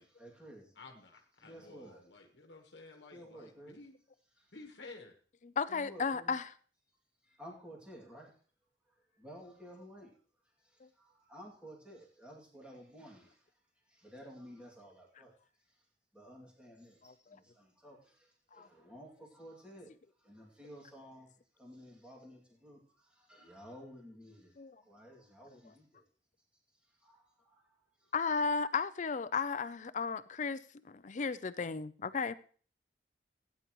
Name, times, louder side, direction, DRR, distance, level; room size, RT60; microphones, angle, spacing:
voice 1, 0.0-0.7 1.4-2.0 3.1-3.8 4.4-4.5 5.7-6.3 7.2-8.3 9.1-10.1 10.6-13.4 13.9-15.3 16.1-19.9 20.2-24.5 24.8-26.0 27.0-27.8, equal, 5° right, 2.4 m, -53 dB
voice 2, 0.7-3.9 4.5-5.1, left 3 dB, 65° left, 1.3 m, -53 dB
voice 3, 5.4-6.5 10.8-10.9 17.0-17.1 18.5-18.7 24.6-24.8 28.1-32.3, left 5 dB, 45° left, 0.5 m, -34 dB
15.5 x 9.5 x 3.1 m
head